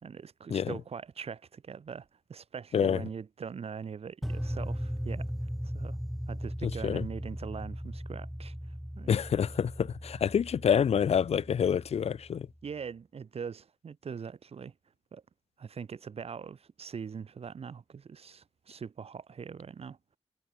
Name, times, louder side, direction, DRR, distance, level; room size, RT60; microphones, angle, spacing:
voice 1, 0.0-5.3 5.6-6.0 6.3-9.2 12.6-14.7 15.1-15.2 15.6-20.2, right 6 dB, 75° right, 2.1 m, -42 dB
sound 1, 4.2-12.4, equal, ahead, 3.1 m, -38 dB
voice 2, 6.6-7.0 9.1-12.5, left 8 dB, 85° left, 0.6 m, -27 dB
wide cardioid pair, 165°, 10 cm